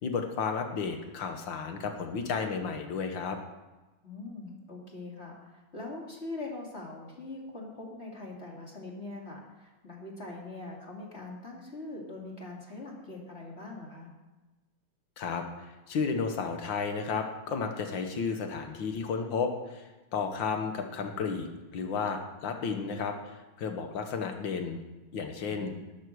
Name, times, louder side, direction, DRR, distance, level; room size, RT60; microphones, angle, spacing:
voice 1, 0.0-3.4 15.2-21.5 21.7-24.9 25.1-25.7, left 5 dB, 65° left, 5 dB, 1.9 m, -33 dB
voice 2, 4.0-14.1 25.4-25.8, left 2 dB, 30° left, -2 dB, 2.3 m, -42 dB
12.0 x 8.2 x 6.3 m, 1.1 s
omnidirectional pair, 2.4 m